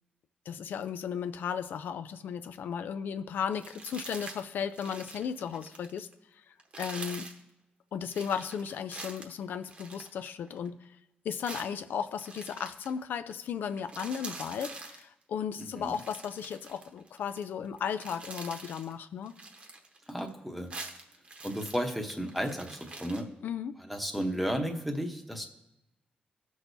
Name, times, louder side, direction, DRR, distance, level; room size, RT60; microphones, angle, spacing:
voice 1, 0.5-6.1 6.5-7.3 7.9-10.8 11.2-19.4 23.4-23.8, left 7 dB, 80° left, 11 dB, 0.4 m, -35 dB
sound 1, 3.5-4.4 4.7-6.1 6.6-7.4 8.1-10.7 11.4-12.9 13.3-13.5 13.7-15.0 15.8-17.4 17.8-18.9 19.3-20.3 20.6-23.2, right 3 dB, 35° right, 0.9 m, -45 dB
voice 2, 15.6-16.0 20.1-20.7 21.4-23.3 23.8-25.5, equal, ahead, 3 dB, 0.9 m, -33 dB
17.0 x 6.2 x 2.7 m, 0.93 s
wide cardioid pair, 160°, 3 cm